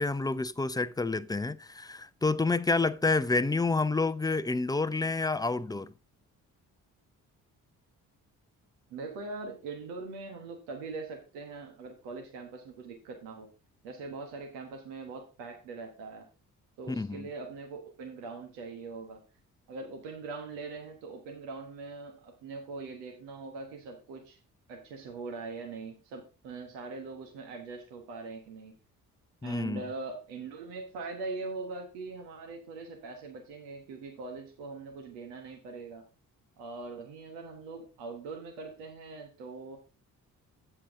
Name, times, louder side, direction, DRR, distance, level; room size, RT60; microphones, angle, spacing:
voice 1, 0.0-5.9 16.9-17.3 29.4-29.8, left 3 dB, 10° left, 0.5 m, -29 dB
voice 2, 8.9-13.5 13.8-16.3 16.8-19.2 19.7-24.4 24.7-28.7 29.4-36.0 36.6-39.8, right 3 dB, 75° right, 1.4 m, -42 dB
8.6 x 7.4 x 3.7 m
hypercardioid pair, 40°, 43 cm